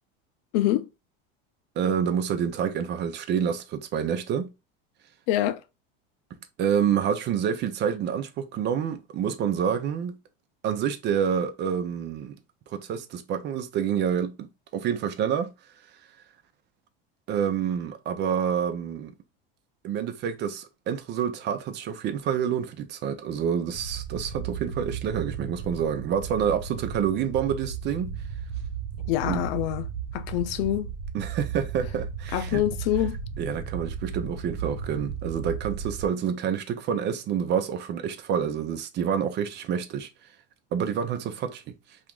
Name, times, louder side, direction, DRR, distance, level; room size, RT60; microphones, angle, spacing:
voice 1, 0.5-0.9 5.3-5.6 29.1-29.9 30.1-30.9 32.3-33.2, left 13 dB, 75° left, 0.5 m, -25 dB
voice 2, 1.8-4.5 6.6-10.2 10.6-12.4 12.7-15.5 17.3-19.1 19.8-28.1 29.3-29.4 31.1-32.6 33.4-40.1 40.7-41.6, right 8 dB, 35° right, 0.5 m, -28 dB
sound 1, 23.7-36.1, right 7 dB, 70° right, 0.9 m, -35 dB
2.8 x 2.5 x 3.6 m
supercardioid pair, 135°, 30 cm